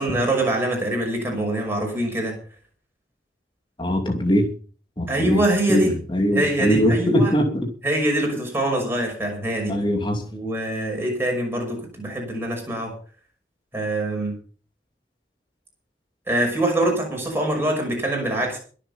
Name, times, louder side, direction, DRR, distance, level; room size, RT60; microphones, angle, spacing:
voice 1, 0.0-2.4 5.1-6.0 6.3-7.4 7.8-9.8 10.3-12.9 13.7-14.3 16.3-18.6, right 1 dB, 15° right, 0 dB, 5.8 m, -24 dB
voice 2, 3.8-4.5 5.0-5.4 5.7-5.9 6.1-7.7 9.7-10.2, equal, 25° left, 3 dB, 2.7 m, -21 dB
22.5 x 7.6 x 5.6 m, 0.41 s
head